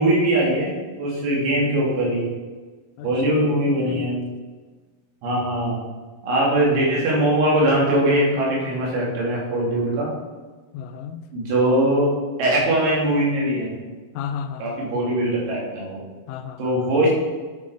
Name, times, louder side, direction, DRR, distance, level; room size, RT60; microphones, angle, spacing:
voice 1, 0.0-2.3 3.0-4.2 5.2-5.8 6.2-10.1 11.3-12.1 12.4-13.8 14.6-16.0 16.6-17.1, right 1 dB, 80° right, -4 dB, 5.0 m, -21 dB
voice 2, 3.0-4.2 6.8-7.1 10.7-11.2 14.2-15.0 16.3-17.0, left 7 dB, 90° left, 9 dB, 3.0 m, -34 dB
10.5 x 6.3 x 4.9 m, 1.3 s
omnidirectional pair, 5.4 m